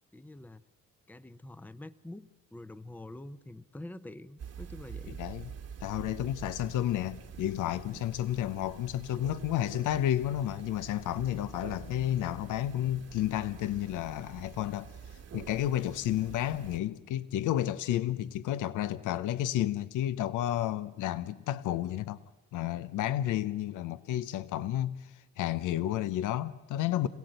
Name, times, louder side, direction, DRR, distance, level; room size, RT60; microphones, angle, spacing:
voice 1, 0.1-0.6 1.1-5.2, left 1 dB, 5° left, 0.7 m, -46 dB
sound 1, 4.4-16.8, right 7 dB, 55° right, 1.5 m, -47 dB
voice 2, 5.1-5.5 5.8-14.9 15.3-22.2 22.5-27.1, left 12 dB, 85° left, 0.7 m, -31 dB
26.5 x 17.0 x 7.9 m
cardioid pair, 90°, 30 cm